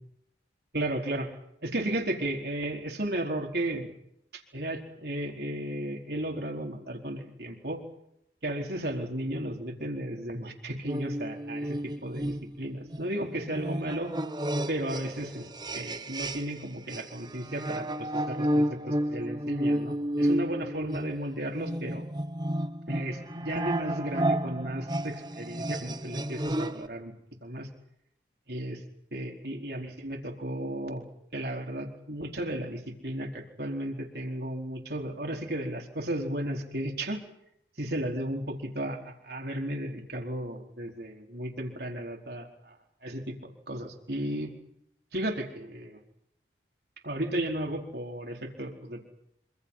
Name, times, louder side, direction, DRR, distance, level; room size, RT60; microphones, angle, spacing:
voice 1, 0.7-1.3 1.6-3.9 4.3-7.8 8.4-14.1 14.7-15.4 15.7-22.0 22.9-27.1 27.4-27.7 28.5-28.8 29.1-31.0 31.3-37.2 37.8-42.7 43.0-43.4 43.7-44.5 45.1-46.0 47.0-49.1, right 1 dB, 60° right, 1 dB, 4.6 m, -34 dB
sound 1, 10.9-16.6 16.9-26.9, right 1 dB, 25° right, 1.0 m, -32 dB
27.0 x 26.0 x 5.8 m, 0.78 s
head